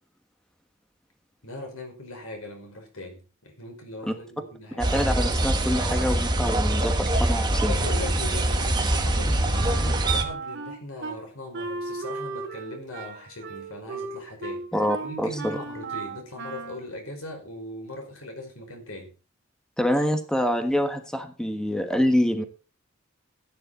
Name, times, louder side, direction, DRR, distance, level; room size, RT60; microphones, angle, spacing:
voice 1, 1.4-4.9 7.7-14.6 15.0-19.1, left 1 dB, 85° left, 3 dB, 5.3 m, -39 dB
voice 2, 4.8-7.7 14.7-15.6 19.8-22.4, equal, 5° left, 7 dB, 1.3 m, -26 dB
sound 1, 4.8-10.2, right 1 dB, 20° right, 1.7 m, -24 dB
Wind instrument woodwind instrument, 9.5-11.2 11.5-16.9, right 4 dB, 55° right, 2.7 m, -36 dB
15.0 x 10.0 x 4.2 m, 0.35 s
head